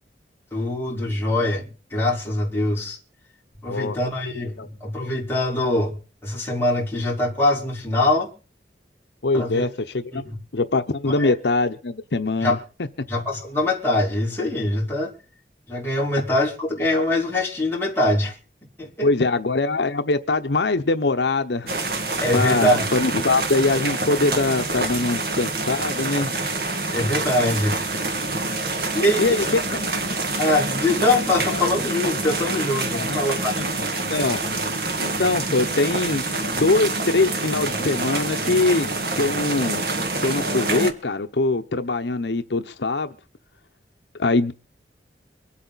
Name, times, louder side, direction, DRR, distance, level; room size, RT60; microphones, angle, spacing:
voice 1, 0.5-3.0 3.6-5.9 6.2-8.3 9.3-9.6 10.1-10.4 11.2-11.3 12.4-12.6 13.1-15.1 15.7-18.4 18.8-19.1 22.2-22.9 26.9-27.8 28.9-29.4 29.7-29.8 30.4-33.8, left 1 dB, 15° left, 4.1 m, -23 dB
voice 2, 9.2-9.7 9.9-12.6 19.0-21.7 22.3-26.3 27.4-27.6 29.2-29.4 31.4-31.6 32.9-33.2 33.5-33.6 34.1-34.4 35.0-36.2 36.5-38.9 39.2-39.9 40.2-43.1 44.2-44.5, left 3 dB, 80° left, 0.8 m, -22 dB
sound 1, 21.7-40.9, right 2 dB, 55° right, 2.0 m, -26 dB
25.0 x 8.5 x 4.1 m
head